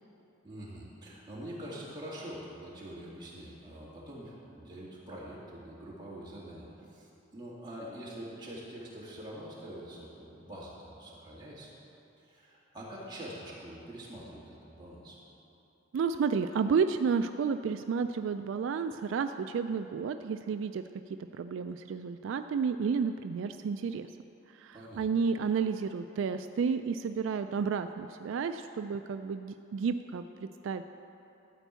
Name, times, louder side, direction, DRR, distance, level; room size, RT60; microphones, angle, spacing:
voice 1, 0.4-11.7 12.2-15.2 24.7-25.0, right 1 dB, 20° right, -7 dB, 2.2 m, -45 dB
voice 2, 15.9-20.8 21.3-24.1 24.5-30.8, right 5 dB, 75° right, 9 dB, 0.3 m, -31 dB
13.5 x 4.6 x 8.0 m, 2.9 s
head